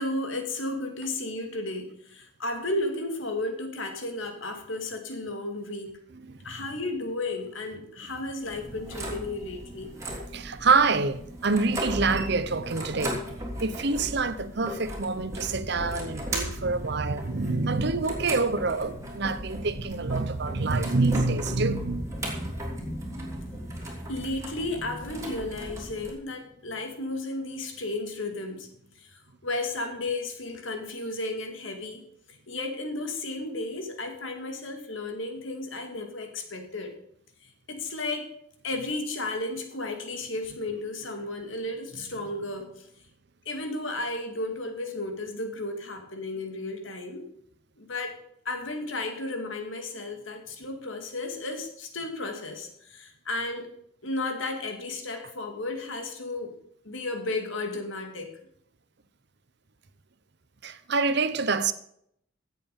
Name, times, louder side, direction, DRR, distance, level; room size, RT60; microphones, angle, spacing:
voice 1, 0.0-6.0 6.4-9.9 24.1-28.7 29.0-36.9 37.7-38.3 38.6-42.9 43.5-47.3 47.8-48.2 48.4-53.7 54.0-56.6 56.8-58.3, left 2 dB, 70° left, 2.3 m, -33 dB
voice 2, 6.1-6.6 10.1-22.6 60.6-61.7, right 4 dB, 55° right, 0.9 m, -27 dB
sound 1, 8.4-26.1, equal, 15° right, 3.0 m, -37 dB
16.0 x 7.7 x 5.3 m
head